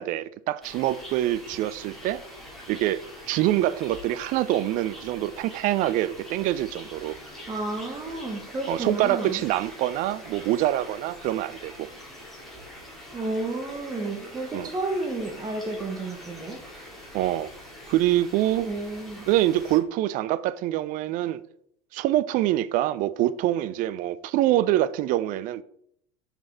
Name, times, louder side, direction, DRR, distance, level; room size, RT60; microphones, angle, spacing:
voice 1, 0.0-2.2 2.7-3.0 3.3-7.2 8.7-11.9 14.5-14.7 17.1-17.5 17.9-18.7 19.3-21.4 21.9-25.6, right 14 dB, 45° right, 0.5 m, -25 dB
sound 1, 0.6-19.8, left 1 dB, ahead, 2.6 m, -44 dB
voice 2, 7.5-9.4 13.1-16.6 18.6-19.2, right 2 dB, 20° right, 1.3 m, -31 dB
5.8 x 5.4 x 4.2 m
hypercardioid pair, 80°, 19 cm